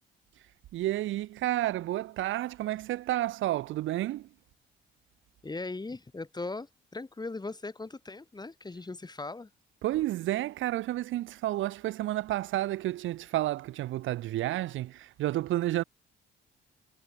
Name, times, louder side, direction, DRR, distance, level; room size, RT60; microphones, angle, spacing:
voice 1, 0.7-4.3 9.8-15.8, right 15 dB, 80° right, 0.8 m, -31 dB
voice 2, 5.4-9.5, left 3 dB, 20° left, 3.9 m, -39 dB
cardioid pair, 90°, 20 cm